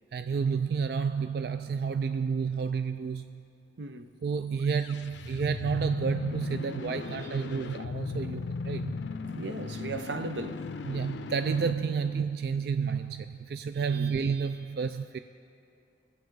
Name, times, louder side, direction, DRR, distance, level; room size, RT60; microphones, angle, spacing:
voice 1, 0.1-3.4 4.2-9.1 10.9-15.2, right 6 dB, 60° right, 0.3 m, -30 dB
voice 2, 3.8-4.2 9.4-10.7 13.9-14.1, right 3 dB, 90° right, 0.7 m, -37 dB
sound 1, 4.6-12.7, left 4 dB, 85° left, 0.4 m, -37 dB
21.5 x 8.1 x 4.7 m
head